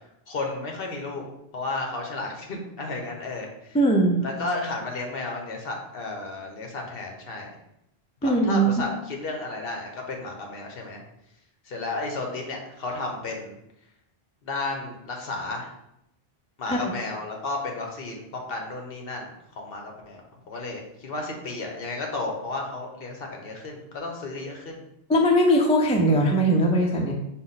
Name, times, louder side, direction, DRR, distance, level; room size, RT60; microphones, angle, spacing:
voice 1, 0.3-1.3 1.5-3.8 4.2-7.5 8.2-11.0 11.6-13.6 14.4-15.7 16.6-19.3 19.6-20.2 20.5-24.8, left 2 dB, 65° left, 1 dB, 1.0 m, -33 dB
voice 2, 3.7-4.2 8.2-8.9 16.7-16.8 25.1-27.1, right 1 dB, 10° left, 0 dB, 0.3 m, -20 dB
5.7 x 2.1 x 3.9 m, 0.81 s
omnidirectional pair, 1.1 m